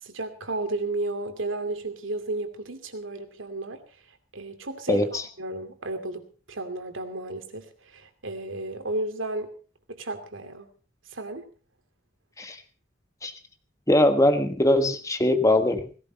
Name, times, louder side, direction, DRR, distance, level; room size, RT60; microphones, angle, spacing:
voice 1, 0.0-3.8 4.3-9.5 9.9-10.7 11.1-11.4, right 2 dB, 90° right, 7 dB, 2.6 m, -33 dB
voice 2, 4.9-5.2 12.4-12.6 13.2-13.3 13.9-15.8, left 1 dB, 15° left, 8 dB, 1.3 m, -21 dB
17.5 x 16.5 x 4.1 m, 0.38 s
head